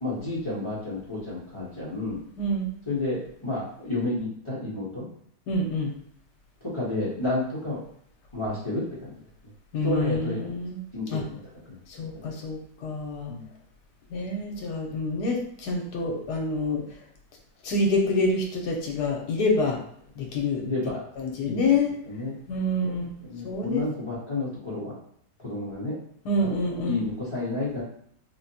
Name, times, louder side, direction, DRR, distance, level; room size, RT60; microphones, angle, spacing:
voice 1, 0.0-2.2 2.9-5.0 6.6-7.8 8.3-9.1 9.8-10.6 10.9-11.4 11.7-12.0 13.3-13.4 20.6-21.0 21.4-21.6 22.0-22.4 23.2-24.9 25.4-26.0 26.4-26.5 26.8-27.8, left 2 dB, 25° left, -9 dB, 0.7 m, -31 dB
voice 2, 2.4-2.7 5.5-5.9 9.7-10.8 11.1-11.2 11.9-13.3 14.1-16.8 17.6-19.8 20.2-20.6 21.2-21.9 22.5-23.1 23.4-23.8 26.2-27.0, left 2 dB, 75° left, 1 dB, 1.2 m, -27 dB
3.6 x 2.1 x 2.7 m, 0.64 s
omnidirectional pair, 1.8 m